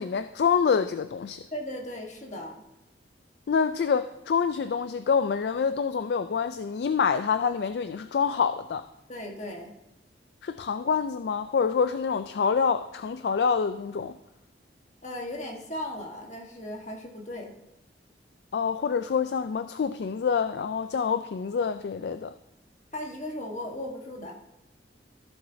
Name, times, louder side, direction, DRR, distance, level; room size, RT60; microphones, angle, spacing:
voice 1, 0.0-1.4 3.5-8.8 10.4-14.1 18.5-22.3, left 6 dB, 65° left, 0.3 m, -26 dB
voice 2, 1.5-2.6 9.1-9.7 15.0-17.5 22.9-24.4, left 1 dB, 40° left, 1.4 m, -37 dB
14.5 x 7.0 x 2.7 m
head